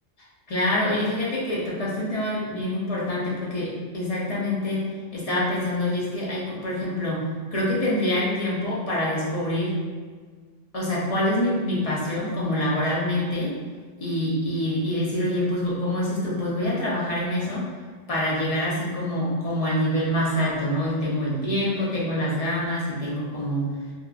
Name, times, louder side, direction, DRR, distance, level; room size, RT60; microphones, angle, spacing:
voice 1, 0.5-4.8 5.1-7.2 7.5-9.7 10.7-13.5 14.0-17.7 18.1-23.7, left 1 dB, 45° left, -7 dB, 0.5 m, -26 dB
2.8 x 2.3 x 2.3 m, 1.5 s
omnidirectional pair, 1.3 m